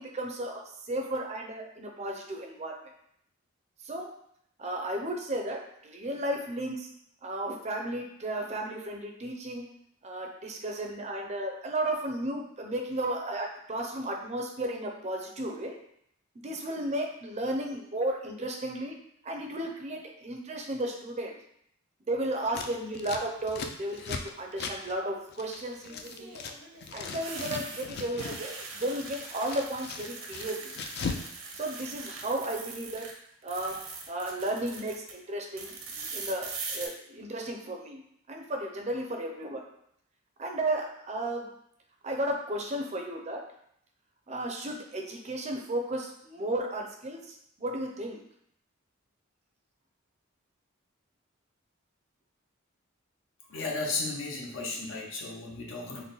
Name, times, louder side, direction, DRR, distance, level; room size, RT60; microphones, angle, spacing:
voice 1, 0.0-2.8 3.8-4.1 4.6-6.9 7.2-9.7 10.0-15.8 16.4-19.0 19.2-21.4 22.1-26.3 26.9-30.7 31.5-33.1 33.4-33.8 34.1-38.0 38.3-39.6 40.4-41.5 42.0-43.4 44.3-48.2, right 1 dB, 30° right, 1 dB, 0.5 m, -34 dB
Scissors, 22.5-26.6 26.8-28.4 28.7-31.3 31.5-32.5, left 5 dB, 50° left, 0.3 m, -39 dB
sound 1, 23.5-24.0 25.9-33.1 33.4-35.1 35.6-36.9, right 4 dB, 85° right, 0.7 m, -42 dB
voice 2, 53.5-56.0, left 3 dB, 70° left, -1 dB, 0.8 m, -34 dB
3.9 x 2.1 x 3.8 m, 0.72 s
head